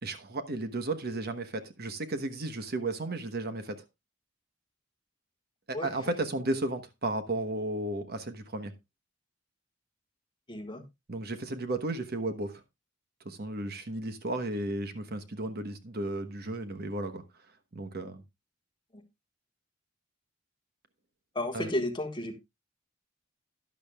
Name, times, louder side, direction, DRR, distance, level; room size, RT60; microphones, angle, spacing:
voice 1, 0.0-3.8 5.7-8.7 11.1-12.6 13.2-17.2 17.7-18.2 21.5-21.7, right 2 dB, 50° right, 1.1 m, -34 dB
voice 2, 10.5-10.8 21.3-22.3, left 1 dB, 25° left, 1.5 m, -32 dB
12.0 x 11.0 x 2.3 m
head